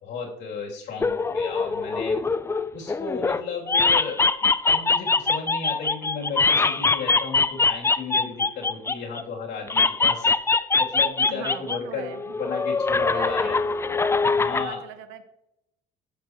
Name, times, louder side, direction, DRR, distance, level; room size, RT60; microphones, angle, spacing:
voice 1, 0.0-2.2 2.7-4.2 4.6-10.3 10.8-13.6 14.3-14.8, left 5 dB, 65° left, -2 dB, 2.9 m, -34 dB
sound 1, 1.0-3.4 3.7-9.2 9.7-11.8 12.1-14.7, left 4 dB, 15° left, 0.4 m, -23 dB
voice 2, 11.3-12.3 13.0-13.7 14.1-15.3, right 10 dB, 85° right, 9 dB, 1.1 m, -40 dB
14.0 x 6.8 x 3.0 m, 0.84 s
cardioid pair, 105°, 19 cm